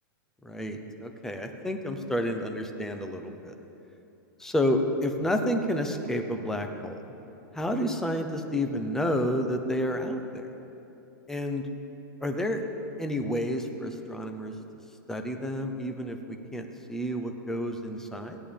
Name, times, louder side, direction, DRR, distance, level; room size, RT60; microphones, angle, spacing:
voice 1, 0.4-3.6 4.4-7.0 7.5-10.5 11.3-11.7 12.2-12.6 13.0-14.5 15.1-18.4, left 1 dB, 5° left, 5 dB, 0.6 m, -30 dB
16.5 x 9.1 x 3.4 m, 2.9 s
supercardioid pair, 150°, 11 cm